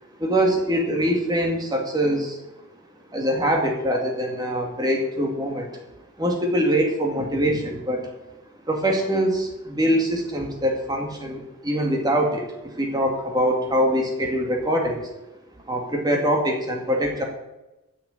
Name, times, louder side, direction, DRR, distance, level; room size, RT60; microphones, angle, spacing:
voice 1, 0.2-2.4 3.1-5.8 6.2-8.1 8.7-15.1 15.7-17.2, equal, 20° right, 1 dB, 2.2 m, -23 dB
10.0 x 6.8 x 8.8 m, 0.98 s
head